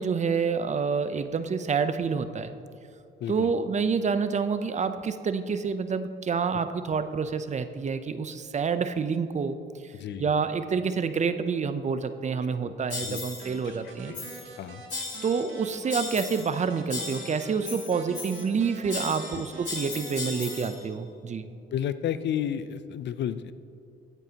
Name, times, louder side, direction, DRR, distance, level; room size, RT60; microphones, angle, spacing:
voice 1, 0.0-2.5 3.3-9.6 9.8-9.9 10.2-14.1 15.2-21.5, right 5 dB, 35° right, 11 dB, 0.5 m, -28 dB
voice 2, 3.2-3.5 9.9-10.3 12.6-12.7 13.0-13.2 13.7-13.8 14.1-14.2 14.6-14.8 19.3-19.4 21.7-23.5, left 9 dB, 60° left, 13 dB, 0.5 m, -32 dB
sound 1, 12.9-13.5 14.1-14.5 14.9-15.5 15.9-16.6 16.9-18.5 18.9-20.8, left 4 dB, 40° left, 2.2 m, -37 dB
sound 2, 13.4-20.7, right 4 dB, 80° right, 1.3 m, -45 dB
15.5 x 9.1 x 2.9 m, 2.4 s
cardioid pair, 90°, 20 cm